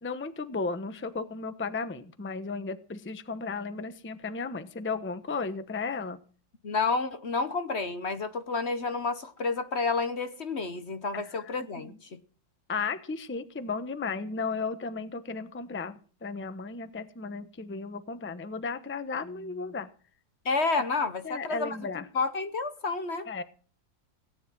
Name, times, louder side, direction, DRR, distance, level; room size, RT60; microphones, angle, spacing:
voice 1, 0.0-6.2 11.1-11.5 11.8-11.9 12.7-19.9 21.2-22.1 23.3-23.4, left 4 dB, 10° left, 0.6 m, -35 dB
voice 2, 6.6-12.2 20.4-21.8 22.1-23.3, left 4 dB, 40° left, 1.0 m, -30 dB
17.5 x 9.9 x 6.2 m
omnidirectional pair, 2.1 m